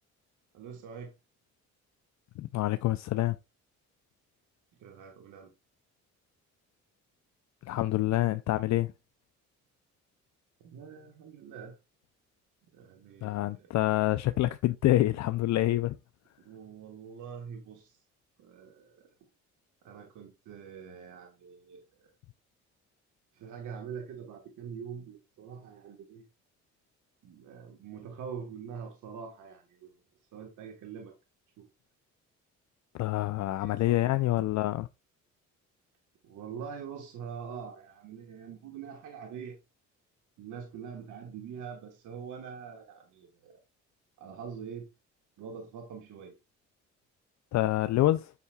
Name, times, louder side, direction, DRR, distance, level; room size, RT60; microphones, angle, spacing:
voice 1, 0.5-1.1 4.8-5.5 10.6-11.8 12.7-13.7 16.4-18.0 18.4-19.1 19.8-21.8 23.3-26.2 27.2-29.9 30.3-31.1 31.6-31.7 33.3-34.4 36.2-39.6 40.4-43.5 44.2-44.9 45.4-46.3, right 7 dB, 80° right, 1.4 m, -44 dB
voice 2, 2.4-3.4 7.7-8.9 13.2-15.9 32.9-34.9 47.5-48.3, left 15 dB, 65° left, 0.4 m, -27 dB
8.3 x 5.7 x 2.3 m
cardioid pair, 90°, 30 cm